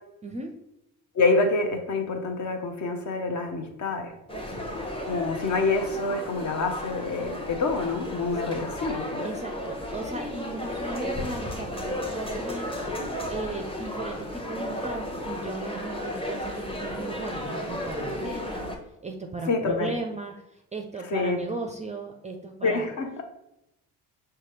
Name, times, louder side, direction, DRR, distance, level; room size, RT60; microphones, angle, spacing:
voice 1, 1.2-4.1 5.1-9.3 19.5-19.9 21.1-21.4 22.6-23.2, left 3 dB, 40° left, 5 dB, 0.9 m, -27 dB
sound 1, 4.3-18.8, left 1 dB, 10° left, 0.9 m, -33 dB
voice 2, 9.2-12.7 13.3-18.7 19.0-22.9, right 2 dB, 15° right, 3 dB, 0.5 m, -36 dB
5.5 x 2.2 x 3.1 m, 0.86 s
hypercardioid pair, 50°, 44 cm